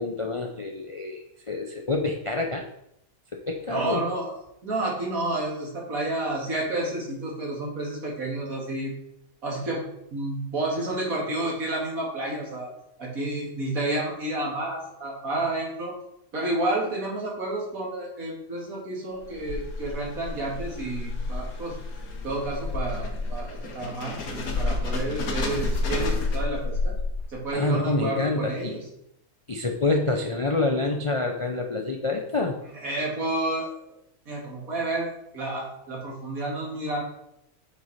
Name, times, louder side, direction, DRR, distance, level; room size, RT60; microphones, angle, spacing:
voice 1, 0.0-2.6 3.3-4.0 27.5-28.8 29.5-32.5, left 2 dB, 40° left, 2 dB, 0.4 m, -27 dB
voice 2, 3.7-4.4 4.6-8.9 9.4-9.8 10.1-12.7 13.0-15.9 16.3-21.8 22.2-27.0 27.3-28.8 32.7-33.7 34.3-37.0, right 2 dB, 70° right, -3 dB, 2.6 m, -30 dB
sound 1, 19.2-27.5, left 3 dB, 75° left, 1.6 m, -30 dB
8.1 x 4.8 x 4.2 m, 0.78 s
omnidirectional pair, 1.5 m